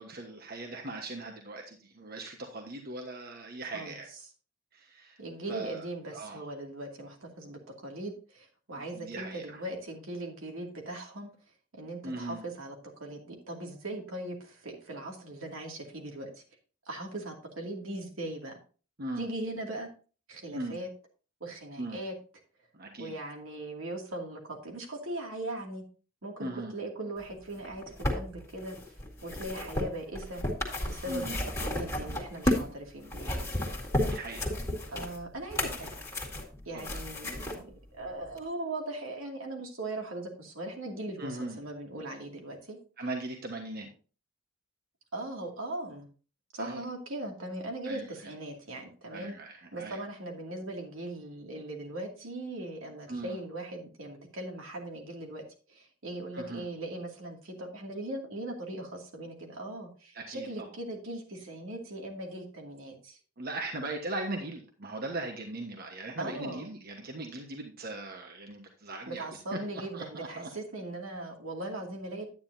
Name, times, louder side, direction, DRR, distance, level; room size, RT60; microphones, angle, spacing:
voice 1, 0.0-4.1 4.7-5.2 5.5-5.8 6.1-6.4 8.7-9.6 12.0-12.4 19.0-19.3 20.5-20.8 21.8-22.0 22.7-23.2 26.4-26.7 31.1-31.4 34.0-34.5 36.7-37.0 41.2-41.6 43.0-43.9 46.6-46.8 47.8-48.3 49.1-50.0 53.1-53.4 56.3-56.6 60.1-60.7 63.4-69.6 69.9-70.5, right 2 dB, 50° right, 3 dB, 1.3 m, -39 dB
voice 2, 5.2-11.3 11.7-16.4 16.9-18.6 19.2-19.9 20.3-20.9 21.4-22.1 23.0-25.8 26.2-28.9 29.2-30.4 30.9-31.3 31.6-33.5 34.9-36.0 36.6-42.8 45.1-46.1 46.5-49.4 49.7-63.2 66.2-66.7 69.1-72.3, right 1 dB, 85° right, 1 dB, 2.5 m, -39 dB
sound 1, 27.6-32.7 33.1-37.6 38.4-38.5, left 1 dB, 15° left, 2.0 m, -33 dB
9.7 x 9.5 x 2.7 m, 0.37 s
head